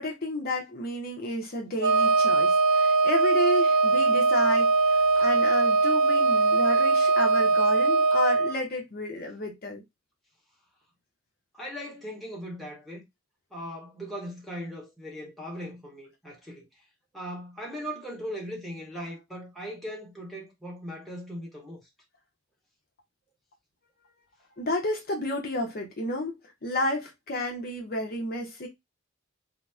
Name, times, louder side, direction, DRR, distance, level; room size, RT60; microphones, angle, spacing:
voice 1, 0.0-9.8 24.6-26.4 26.6-28.7, left 1 dB, 45° left, 0.7 m, -31 dB
Wind instrument woodwind instrument, 1.8-8.5, right 3 dB, 65° right, 0.4 m, -21 dB
voice 2, 11.5-13.0 13.5-16.7 17.1-21.8, equal, ahead, 1.0 m, -39 dB
2.8 x 2.0 x 3.4 m
head